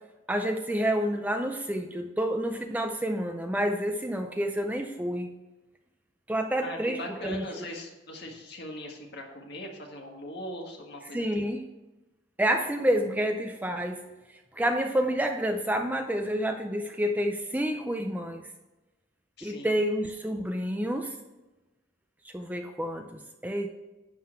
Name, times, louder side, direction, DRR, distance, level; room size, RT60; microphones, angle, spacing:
voice 1, 0.3-5.3 6.3-7.4 11.1-11.6 12.4-14.0 14.5-18.4 19.4-21.1 22.2-23.7, equal, 10° right, 5 dB, 0.5 m, -29 dB
voice 2, 6.6-11.3 19.4-19.7, left 1 dB, 55° left, 1 dB, 1.7 m, -40 dB
11.5 x 3.9 x 7.5 m, 1.1 s
head